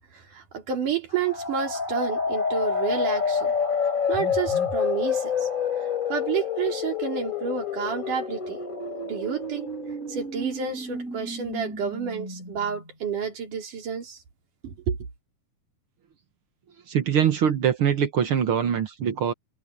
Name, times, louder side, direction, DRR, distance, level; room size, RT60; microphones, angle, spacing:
voice 1, 0.1-3.5 4.1-5.5 6.1-8.6 9.0-9.7 10.1-14.2 14.6-15.0, right 7 dB, 80° right, 5.0 m, -30 dB
sound 1, 1.1-12.8, left 5 dB, 25° left, 5.1 m, -28 dB
voice 2, 16.9-19.3, right 8 dB, 55° right, 1.7 m, -23 dB
omnidirectional pair, 3.6 m